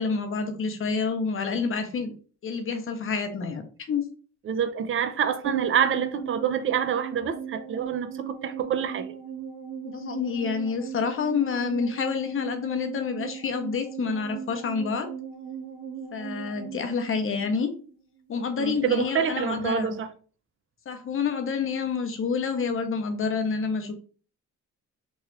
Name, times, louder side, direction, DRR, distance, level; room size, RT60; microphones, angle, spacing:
voice 1, 0.0-2.1 2.4-3.6 3.9-4.0 9.8-15.1 16.1-17.7 18.3-20.0 20.9-23.9, left 5 dB, 45° left, 0.7 m, -28 dB
voice 2, 4.5-9.1 18.6-20.1, right 8 dB, 45° right, 0.5 m, -27 dB
sound 1, 5.4-18.0 18.2-18.3, right 7 dB, 65° right, 1.5 m, -38 dB
3.1 x 2.3 x 3.1 m
cardioid pair, 90°, 30 cm